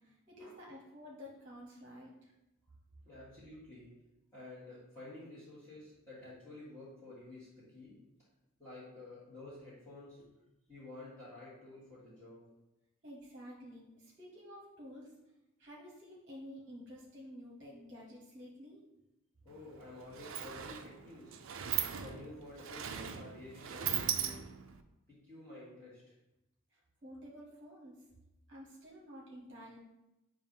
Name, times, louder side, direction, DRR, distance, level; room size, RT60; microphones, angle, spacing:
voice 1, 0.0-2.3 13.0-15.1 15.6-18.8 26.7-28.0 28.5-29.8, equal, 35° right, -4 dB, 1.1 m, -51 dB
voice 2, 3.0-3.9 4.3-8.0 8.6-10.3 10.7-12.4 19.4-21.4 22.0-24.5 25.1-26.1, left 2 dB, 15° left, -13 dB, 1.6 m, -51 dB
Sliding door, 19.5-19.6 19.9-24.8, right 9 dB, 65° right, 0.4 m, -38 dB
7.0 x 2.5 x 5.3 m, 0.94 s
head